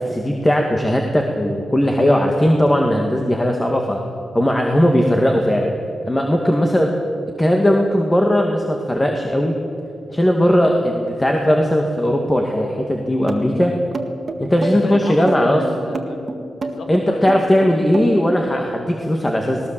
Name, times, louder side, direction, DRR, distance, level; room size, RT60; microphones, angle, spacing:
voice 1, 0.1-4.0 4.3-5.7 6.1-6.9 7.4-9.6 10.1-13.8 14.4-15.6 16.9-19.7, equal, 15° left, 1 dB, 2.1 m, -18 dB
sound 1, 13.3-18.4, right 3 dB, 40° right, 1.8 m, -27 dB
voice 2, 14.5-17.5, left 2 dB, 80° left, 4 dB, 2.5 m, -33 dB
19.5 x 19.0 x 7.6 m, 2.6 s
cardioid pair, 95°, 0 cm